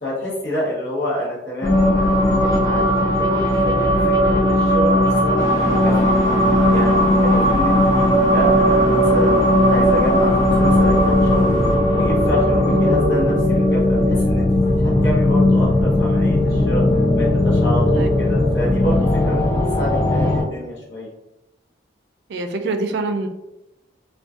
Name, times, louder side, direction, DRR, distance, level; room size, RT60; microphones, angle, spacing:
voice 1, 0.0-6.2 6.7-11.5 11.9-14.5 14.8-16.8 17.1-21.1, left 1 dB, 70° left, -6 dB, 0.8 m, -28 dB
sound 1, 1.6-20.4, left 1 dB, 15° left, 0.4 m, -17 dB
sound 2, 5.4-11.8, equal, 40° left, 1.2 m, -28 dB
voice 2, 22.3-23.3, right 3 dB, 65° right, 6 dB, 0.3 m, -25 dB
2.5 x 2.2 x 2.3 m, 0.93 s
head